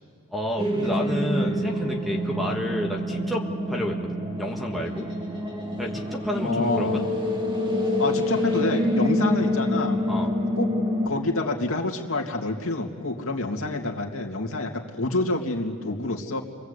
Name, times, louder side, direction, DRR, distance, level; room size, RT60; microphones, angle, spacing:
voice 1, 0.3-5.1 5.8-7.0 10.1-10.3, left 1 dB, ahead, -2 dB, 1.7 m, -30 dB
sound 1, 0.6-11.1, left 1 dB, 20° right, 2.2 m, -26 dB
voice 2, 6.4-7.1 8.0-10.0 10.5-10.7 11.0-16.4, left 2 dB, 70° left, 1 dB, 2.5 m, -27 dB
30.0 x 22.0 x 8.3 m, 2.1 s
head